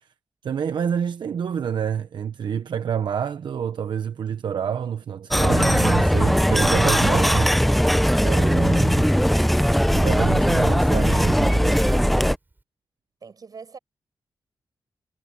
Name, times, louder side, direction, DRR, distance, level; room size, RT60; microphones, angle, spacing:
voice 1, 0.4-7.5 8.2-9.1 9.9-12.1, right 8 dB, 85° right, 0.9 m, -27 dB
sound 1, 5.3-12.4, equal, ahead, 0.8 m, -19 dB
Female singing, 5.5-11.8 12.5-12.6, right 2 dB, 25° right, 4.3 m, -38 dB
voice 2, 11.1-12.0 13.2-13.8, right 5 dB, 55° right, 7.3 m, -44 dB
wide cardioid pair, 100°, 8 cm